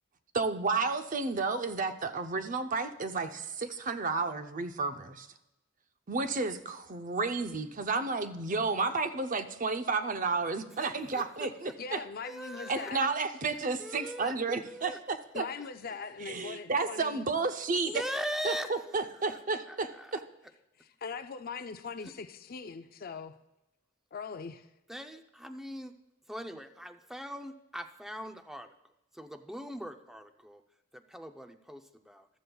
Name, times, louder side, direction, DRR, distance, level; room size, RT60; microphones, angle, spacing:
voice 1, 0.3-5.3 6.1-12.0 12.7-15.4 16.3-18.0 18.4-20.2, right 4 dB, 40° right, 8 dB, 0.7 m, -32 dB
voice 2, 10.8-11.5 12.2-12.9 13.8-15.0 15.6-15.7 17.9-19.4 19.7-20.2 22.0-22.1 24.9-26.0 26.3-28.7 29.1-30.6 30.9-32.3, equal, ahead, 6 dB, 0.6 m, -41 dB
voice 3, 11.8-13.0 15.3-17.2 20.8-23.4 24.1-24.7, left 5 dB, 50° left, 9 dB, 0.5 m, -41 dB
14.5 x 12.5 x 2.3 m, 0.93 s
head